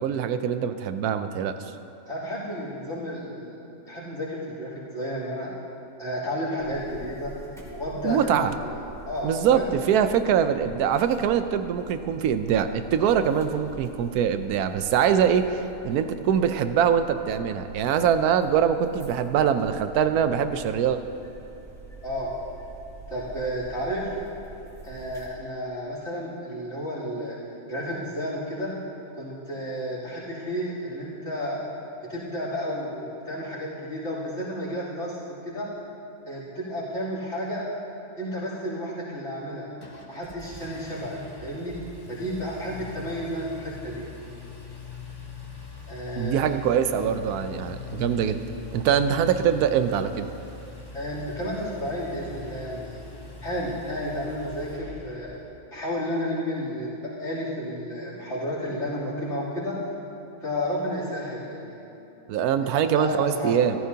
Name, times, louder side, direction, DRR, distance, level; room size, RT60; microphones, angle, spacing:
voice 1, 0.0-1.5 8.0-8.6 9.2-21.0 46.2-48.4 48.7-50.3 62.3-63.8, right 8 dB, 80° right, 10 dB, 1.1 m, -23 dB
voice 2, 2.1-3.6 3.9-5.5 6.0-7.3 7.7-8.7 9.1-9.7 22.0-22.3 23.1-24.1 24.8-27.4 27.7-28.7 29.1-31.6 32.1-35.7 36.2-37.6 38.2-39.7 40.1-41.8 42.1-44.1 45.9-46.6 50.9-53.0 53.4-55.4 55.7-59.8 60.4-61.8 62.6-63.6, equal, 50° left, -8 dB, 3.4 m, -32 dB
sound 1, 6.6-25.2, right 2 dB, ahead, 2.0 m, -46 dB
Engine, 39.8-55.5, left 4 dB, 20° left, 0.8 m, -42 dB
15.0 x 14.0 x 2.8 m, 2.9 s
omnidirectional pair, 1.6 m